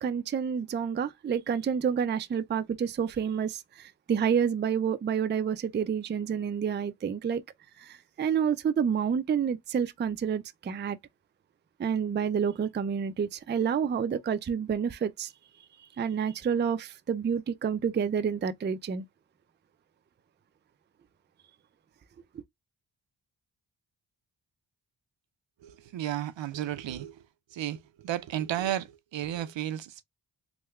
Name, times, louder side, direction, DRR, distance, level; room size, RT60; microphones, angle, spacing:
voice 1, 0.0-7.4 7.8-11.0 11.8-15.3 16.0-19.0, right 7 dB, 25° right, 0.4 m, -29 dB
voice 2, 25.6-27.2 27.5-30.0, right 12 dB, 70° right, 0.6 m, -33 dB
3.5 x 2.1 x 3.0 m
cardioid pair, 75°, 47 cm